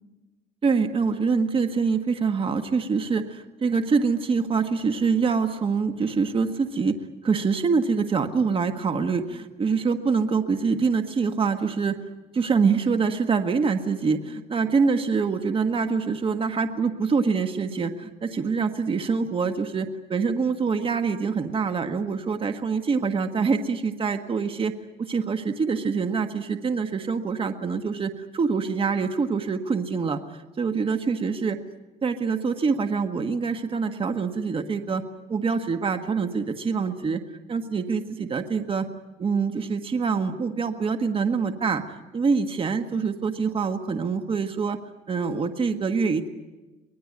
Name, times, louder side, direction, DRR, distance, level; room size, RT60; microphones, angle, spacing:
voice 1, 0.6-7.0 7.2-12.0 12.3-24.7 25.0-30.2 30.6-31.6 32.0-35.0 35.3-37.2 37.5-38.9 39.2-41.8 42.1-44.8 45.1-46.3, right 5 dB, 30° right, 7 dB, 1.5 m, -25 dB
24.5 x 19.5 x 9.7 m, 1.2 s
cardioid pair, 110°, 17 cm